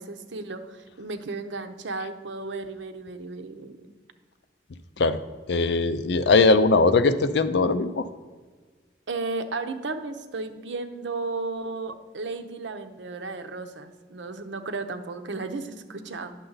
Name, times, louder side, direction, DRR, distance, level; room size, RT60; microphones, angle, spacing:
voice 1, 0.0-3.8 9.1-16.3, right 3 dB, 80° right, 8 dB, 0.7 m, -34 dB
voice 2, 5.5-8.1, left 3 dB, 65° left, 11 dB, 0.5 m, -20 dB
9.9 x 6.7 x 4.0 m, 1.4 s
head